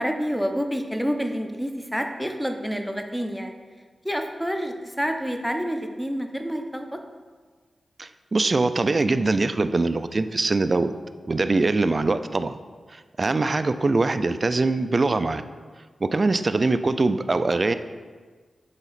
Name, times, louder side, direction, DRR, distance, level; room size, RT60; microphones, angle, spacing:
voice 1, 0.0-3.5 4.0-7.0 12.0-12.4 16.3-16.6, equal, ahead, 5 dB, 0.6 m, -28 dB
voice 2, 8.0-10.9 11.3-12.6 13.2-15.4 16.0-17.7, right 3 dB, 45° right, 11 dB, 0.3 m, -22 dB
8.1 x 2.9 x 4.1 m, 1.5 s
cardioid pair, 55°, 0 cm